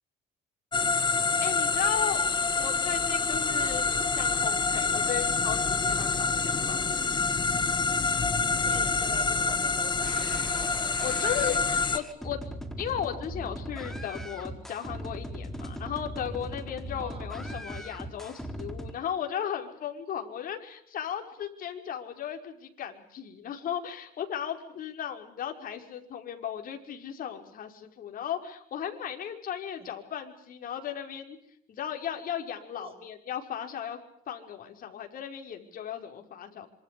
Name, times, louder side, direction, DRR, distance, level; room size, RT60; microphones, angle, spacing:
sound 1, 0.7-12.0, left 4 dB, 25° left, 2.1 m, -27 dB
voice 1, 1.4-2.2 2.6-7.1 11.0-12.4 12.8-31.4 31.7-34.0 34.3-36.7, left 9 dB, 55° left, 4 dB, 5.6 m, -36 dB
voice 2, 8.6-10.5 11.0-11.3 17.0-17.3 29.8-29.9 32.8-32.9, right 5 dB, 35° right, 9 dB, 7.3 m, -45 dB
sound 2, 10.0-18.9, equal, ahead, 4.4 m, -39 dB
27.0 x 26.0 x 6.9 m, 0.66 s
cardioid pair, 110°, 17 cm